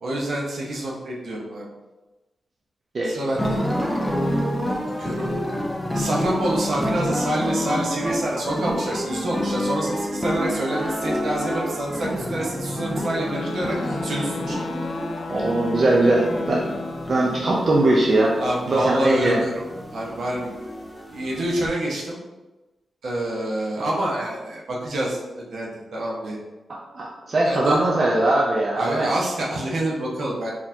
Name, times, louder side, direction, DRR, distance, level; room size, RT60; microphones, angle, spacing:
voice 1, 0.0-1.7 3.0-3.6 5.0-5.3 5.9-14.7 18.4-19.6 19.9-20.5 21.1-22.2 23.0-26.4 27.4-27.8 28.8-30.5, right 1 dB, 70° right, -3 dB, 0.8 m, -27 dB
sound 1, 3.3-21.7, equal, ahead, 0.5 m, -28 dB
sound 2, 13.1-17.6, left 3 dB, 75° left, 0.3 m, -34 dB
voice 2, 15.3-16.6 17.1-18.4 18.7-19.4 26.7-29.1, right 2 dB, 45° right, -3 dB, 0.6 m, -20 dB
4.1 x 2.9 x 2.7 m, 1.1 s
wide cardioid pair, 110°, 0 cm